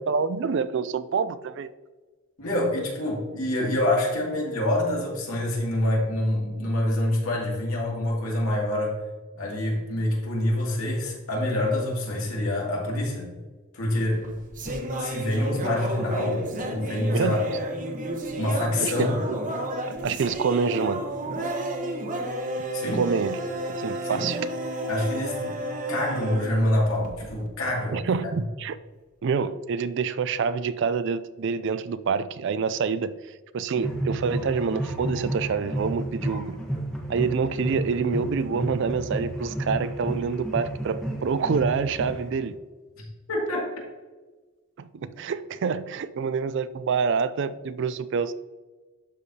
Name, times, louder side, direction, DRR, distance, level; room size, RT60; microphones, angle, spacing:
voice 1, 0.1-1.7 17.1-17.4 18.8-19.4 19.9-21.1 22.9-23.4 23.7-24.4 27.9-28.8 29.2-33.1 33.5-36.6 37.1-42.6 44.8-48.3, right 5 dB, 55° right, 14 dB, 0.3 m, -27 dB
voice 2, 2.4-9.0 9.4-13.3 13.7-14.2 15.0-17.4 18.4-19.2 22.7-23.0 24.0-24.3 24.9-25.5 25.9-28.4 43.0-43.7 45.1-45.2, left 1 dB, 75° left, -3 dB, 2.3 m, -26 dB
sound 1, 14.0-27.5, right 1 dB, 35° right, 0.9 m, -31 dB
sound 2, 33.8-42.5, right 1 dB, 5° left, 1.0 m, -32 dB
12.0 x 4.8 x 2.8 m, 1.3 s
head